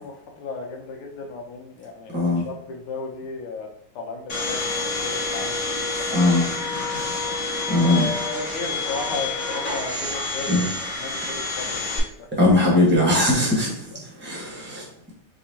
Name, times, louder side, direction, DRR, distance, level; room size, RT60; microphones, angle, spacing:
voice 1, 0.0-3.7 4.0-6.2 7.8-10.7 11.0-12.3, left 3 dB, 85° left, 1 dB, 1.7 m, -35 dB
voice 2, 2.1-2.4 6.1-6.5 7.7-8.1 10.5-10.7 12.3-14.9, left 1 dB, 10° right, -4 dB, 0.8 m, -20 dB
Domestic sounds home sounds, 4.3-12.0, left 3 dB, 50° left, 1.0 m, -28 dB
4.7 x 2.9 x 2.8 m, 0.66 s
omnidirectional pair, 2.3 m